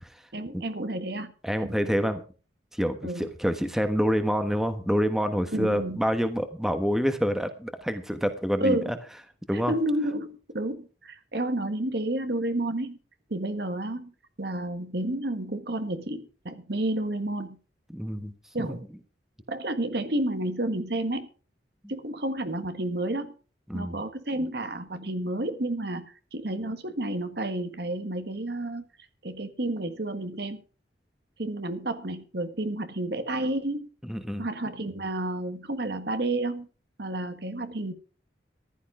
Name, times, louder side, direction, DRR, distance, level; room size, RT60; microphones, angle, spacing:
voice 1, 0.3-1.3 1.6-1.8 3.0-3.3 5.5-6.0 8.6-8.9 9.5-13.0 13.3-14.1 14.4-17.6 18.5-18.9 19.5-21.3 21.9-23.3 23.7-28.8 29.2-30.6 31.4-33.9 34.4-36.7 37.0-37.9, right 1 dB, 60° right, 9 dB, 1.5 m, -30 dB
voice 2, 1.4-2.2 2.7-9.0 9.5-9.7 17.9-18.3 18.7-18.8 23.7-24.0 34.0-34.5, equal, ahead, 8 dB, 1.2 m, -27 dB
14.5 x 11.5 x 4.9 m, 0.37 s
head